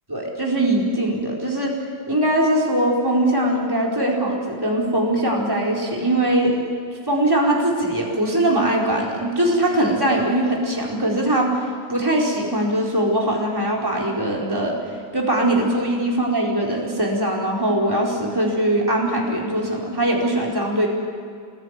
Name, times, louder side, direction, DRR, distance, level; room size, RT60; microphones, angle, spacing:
voice 1, 0.1-1.7 2.1-6.6 7.1-14.8 15.1-20.9, right 1 dB, 10° right, -2 dB, 4.5 m, -21 dB
28.0 x 21.5 x 9.6 m, 2.2 s
omnidirectional pair, 1.9 m